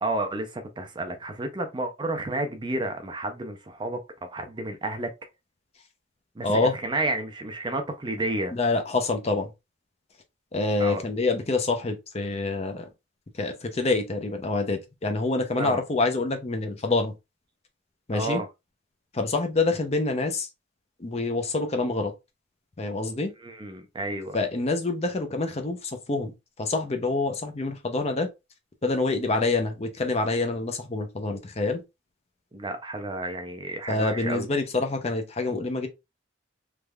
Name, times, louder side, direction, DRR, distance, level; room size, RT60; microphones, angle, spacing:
voice 1, 0.0-5.1 6.4-8.5 10.8-11.0 15.6-15.8 18.1-18.5 23.4-24.4 32.5-34.5, right 2 dB, 25° right, 0.5 m, -31 dB
voice 2, 6.4-6.7 8.5-9.5 10.5-12.9 13.4-17.1 18.1-18.4 19.1-20.5 21.0-22.1 22.8-23.3 24.3-26.3 26.6-28.3 28.8-31.8 33.9-35.9, left 3 dB, 30° left, 0.5 m, -26 dB
3.4 x 3.2 x 2.3 m
head